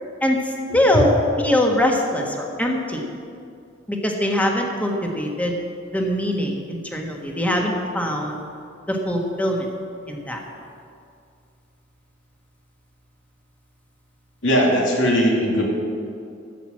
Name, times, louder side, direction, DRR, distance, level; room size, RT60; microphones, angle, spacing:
voice 1, 0.7-1.1 1.4-3.0 3.9-5.6 5.9-8.4 8.9-9.7 10.1-10.4, left 1 dB, 10° left, 0 dB, 1.6 m, -22 dB
voice 2, 14.4-15.6, equal, 75° left, -1 dB, 2.8 m, -19 dB
13.5 x 8.1 x 7.5 m, 2.4 s
head